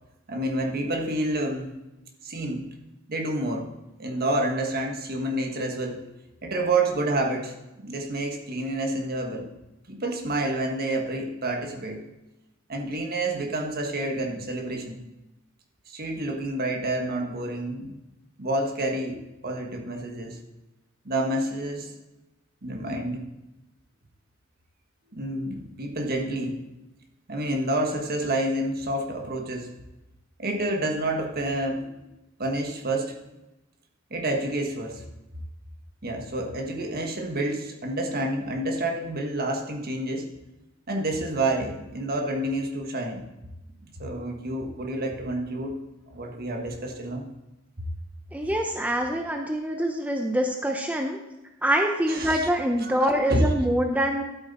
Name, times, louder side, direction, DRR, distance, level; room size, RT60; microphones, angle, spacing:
voice 1, 0.3-1.8 2.2-2.7 3.1-3.7 4.0-6.0 6.4-9.5 9.9-12.0 12.7-15.0 15.9-18.0 18.4-20.4 21.0-21.9 22.6-23.3 25.1-26.6 27.3-29.7 30.4-31.9 32.4-33.2 34.1-35.0 36.0-40.3 40.9-43.2 44.0-45.8 46.1-47.3 47.8-47.9 52.1-52.5 52.8-52.9 53.3-53.5, right 1 dB, 50° right, 2 dB, 1.5 m, -28 dB
voice 2, 48.3-51.2 51.6-54.2, equal, 5° right, 3 dB, 0.7 m, -25 dB
12.5 x 8.0 x 4.2 m, 0.99 s
head